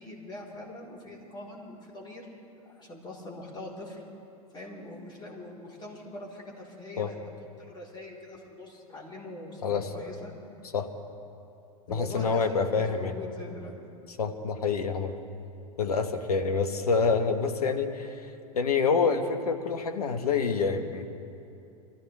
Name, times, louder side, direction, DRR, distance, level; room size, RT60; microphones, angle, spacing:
voice 1, 0.0-2.3 2.6-4.0 4.5-9.6 9.9-10.3 11.9-13.8, left 1 dB, 25° left, -3 dB, 3.9 m, -42 dB
voice 2, 11.9-13.1 14.2-15.1 15.8-18.3 18.5-21.1, left 5 dB, 80° left, 7 dB, 1.2 m, -27 dB
25.0 x 14.5 x 3.4 m, 2.7 s
hypercardioid pair, 95°, 19 cm